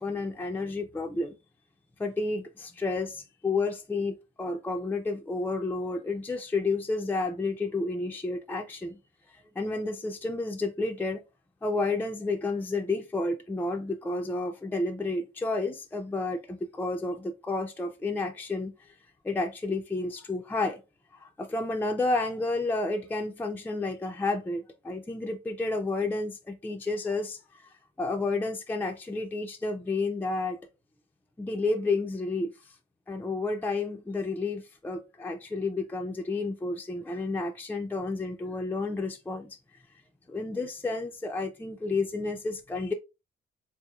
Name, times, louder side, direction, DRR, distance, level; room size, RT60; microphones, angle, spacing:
voice 1, 0.0-1.4 2.0-9.0 9.6-11.2 11.6-19.0 19.2-20.8 21.1-27.7 28.0-30.6 31.4-32.5 33.1-39.6 40.3-42.9, left 3 dB, 10° left, 0.4 m, -31 dB
3.7 x 2.9 x 2.3 m
cardioid pair, 90°, 20 cm